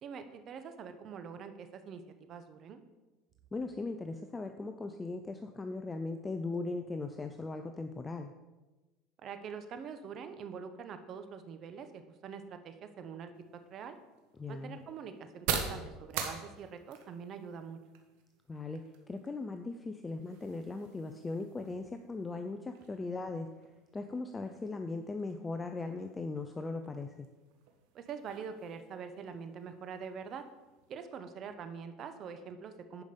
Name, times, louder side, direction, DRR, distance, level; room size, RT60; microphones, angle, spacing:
voice 1, 0.0-2.8 9.2-13.3 13.7-14.0 14.5-17.8 27.9-30.4 30.9-33.0, right 6 dB, 40° right, 9 dB, 0.9 m, -44 dB
voice 2, 3.5-8.3 14.4-14.8 18.5-23.5 23.9-27.3, left 3 dB, 15° left, 6 dB, 0.5 m, -39 dB
sound 1, 13.3-30.9, right 7 dB, 75° right, 1.3 m, -45 dB
10.5 x 5.2 x 5.3 m, 1.1 s
supercardioid pair, 130°, 0 cm